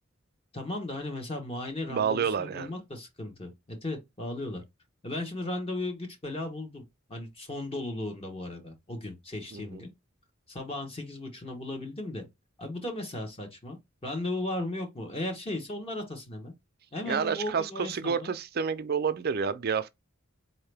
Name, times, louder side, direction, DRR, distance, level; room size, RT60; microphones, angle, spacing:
voice 1, 0.5-4.6 5.0-6.8 7.1-9.9 10.5-12.2 12.6-13.8 14.0-16.5 16.9-18.3, left 2 dB, 30° left, 1.0 m, -36 dB
voice 2, 1.9-2.7 9.5-9.8 17.1-19.9, right 6 dB, 50° right, 0.5 m, -29 dB
4.3 x 2.8 x 3.3 m
head